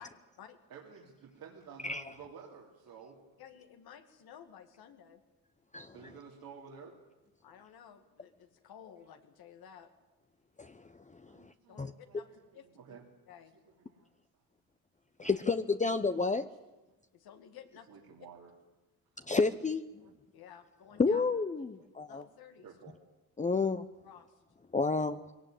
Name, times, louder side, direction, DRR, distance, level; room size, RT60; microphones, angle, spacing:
voice 1, 0.7-3.2 5.9-7.0 11.3-12.4 12.8-13.0 13.9-14.1 15.2-15.4 17.9-18.5 20.0-20.2 22.6-23.0, right 6 dB, 75° right, -2 dB, 3.0 m, -52 dB
voice 2, 3.4-5.2 7.4-9.9 11.7-12.3 12.5-13.0 13.3-13.5 17.1-17.9 20.3-21.2 22.1-22.7 23.5-23.6 24.0-24.3, left 8 dB, 85° left, 7 dB, 2.4 m, -53 dB
voice 3, 5.7-6.1 10.6-11.9 15.2-16.5 19.2-19.9 21.0-22.2 23.4-23.8 24.7-25.2, left 4 dB, 20° left, 10 dB, 0.8 m, -31 dB
21.5 x 18.0 x 9.1 m, 1.1 s
cardioid pair, 90°, 36 cm